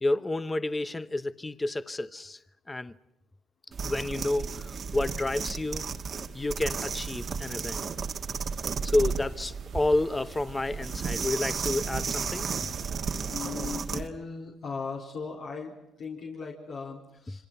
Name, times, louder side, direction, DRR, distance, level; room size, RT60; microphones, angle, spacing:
voice 1, 0.0-2.4 2.7-2.9 3.8-5.8 6.3-7.9 8.8-12.7, left 2 dB, 15° left, 1.0 m, -30 dB
sound 1, 3.7-14.1, right 5 dB, 45° right, 1.5 m, -34 dB
sound 2, 6.6-13.5, right 9 dB, 90° right, 3.5 m, -47 dB
voice 2, 13.3-17.4, left 4 dB, 65° left, 4.2 m, -38 dB
27.5 x 25.5 x 5.7 m
cardioid pair, 95°, 0 cm